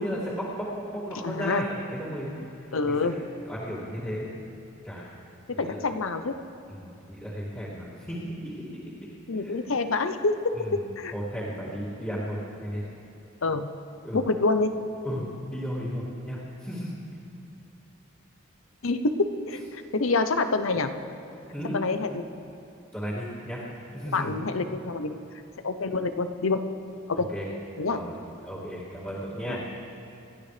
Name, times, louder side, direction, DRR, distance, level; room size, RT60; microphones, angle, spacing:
voice 1, 0.0-3.2 3.5-4.3 4.8-5.2 5.5-5.8 6.7-9.6 10.5-10.9 11.1-12.8 14.0-14.2 15.0-17.0 21.5-21.8 22.9-23.6 23.9-24.4 27.1-27.5 27.9-28.2 28.4-29.6, equal, 10° left, -12 dB, 2.4 m, -35 dB
voice 2, 1.2-1.6 2.7-3.2 5.5-6.4 9.3-10.4 10.7-11.1 13.4-13.7 14.1-14.7 18.8-20.9 21.7-22.3 24.1-25.2 25.6-26.6 27.1-27.3 27.8-28.0 29.5-29.6, left 3 dB, 90° left, 9 dB, 0.8 m, -27 dB
27.0 x 12.5 x 3.4 m, 2.7 s
head